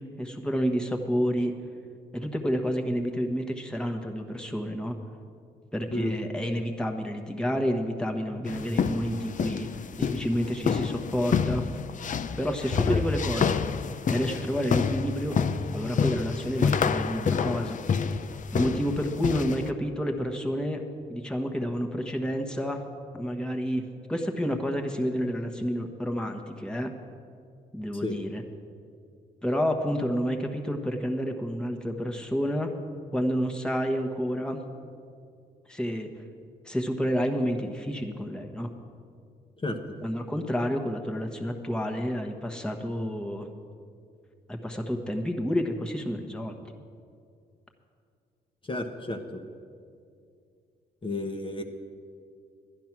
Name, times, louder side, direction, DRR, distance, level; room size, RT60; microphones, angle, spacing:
voice 1, 0.0-1.5 2.1-4.9 5.7-9.7 10.0-11.7 12.4-13.6 14.1-15.3 15.7-17.8 18.5-20.8 21.1-22.8 23.1-23.8 24.1-26.9 27.7-28.4 29.4-32.7 33.1-34.6 35.7-36.1 36.6-38.7 40.0-43.5 44.5-46.5, equal, 5° left, 2 dB, 1.2 m, -29 dB
sound 1, 8.5-19.7, left 6 dB, 45° left, 0.5 m, -28 dB
voice 2, 48.6-49.4 51.0-51.6, left 1 dB, 30° left, 3 dB, 1.1 m, -32 dB
11.0 x 11.0 x 6.0 m, 2.3 s
cardioid pair, 70°, 18 cm